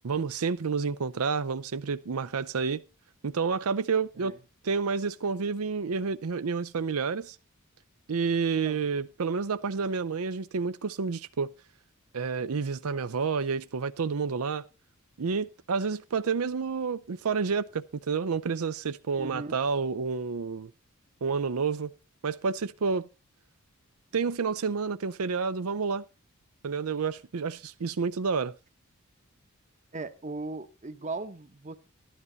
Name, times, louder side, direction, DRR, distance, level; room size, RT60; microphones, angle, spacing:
voice 1, 0.0-2.8 3.2-4.3 4.6-7.4 8.1-11.5 12.1-14.7 15.2-20.7 21.2-21.9 22.2-23.1 24.1-26.0 26.6-28.5, right 5 dB, 80° right, 0.6 m, -29 dB
voice 2, 19.2-19.5 29.9-31.7, right 3 dB, 35° right, 1.1 m, -38 dB
13.5 x 12.5 x 4.0 m
head